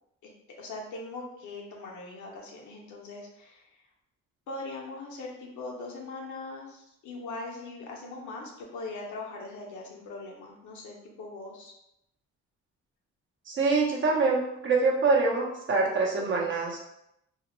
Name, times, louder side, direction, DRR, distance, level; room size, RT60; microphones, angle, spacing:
voice 1, 0.6-3.7 4.5-11.7, left 3 dB, 75° left, -1 dB, 0.7 m, -40 dB
voice 2, 13.5-16.8, right 3 dB, 40° right, -3 dB, 0.7 m, -25 dB
2.4 x 2.1 x 3.0 m, 0.81 s
cardioid pair, 90°, 30 cm